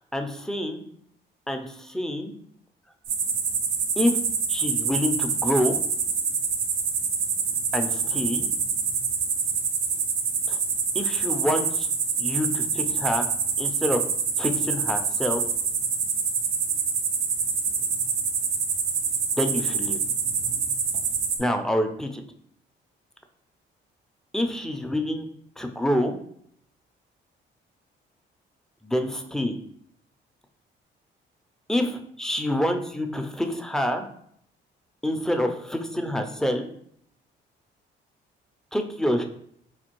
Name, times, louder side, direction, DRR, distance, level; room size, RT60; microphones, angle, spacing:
voice 1, 0.1-0.8 1.5-2.3 4.0-4.2 4.5-5.8 7.7-8.5 10.5-10.6 10.9-11.9 12.2-13.2 13.6-14.0 14.4-15.4 19.4-20.0 21.4-22.2 24.3-25.3 25.6-26.1 28.8-29.5 31.7-34.1 35.0-36.7 38.7-39.2, left 1 dB, 5° left, 5 dB, 0.4 m, -27 dB
sound 1, 3.0-21.4, right 5 dB, 85° right, 0.5 m, -26 dB
4.3 x 2.3 x 3.0 m, 0.67 s
cardioid pair, 90°, 20 cm